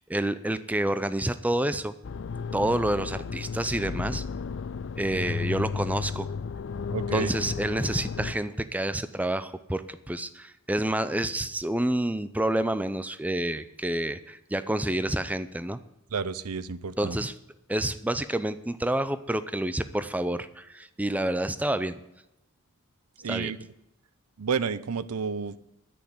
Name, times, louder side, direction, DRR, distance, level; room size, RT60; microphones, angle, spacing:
voice 1, 0.0-1.9 2.5-4.2 5.0-6.3 7.1-15.8 17.0-17.3 17.7-22.0 23.3-23.5, right 1 dB, 5° right, 13 dB, 0.5 m, -28 dB
sound 1, 2.0-8.3, left 5 dB, 55° left, 0.4 m, -33 dB
voice 2, 6.9-7.3 16.1-17.2 23.2-23.6 24.4-25.6, right 5 dB, 90° right, 17 dB, 0.7 m, -30 dB
10.5 x 8.7 x 9.5 m, 0.87 s
head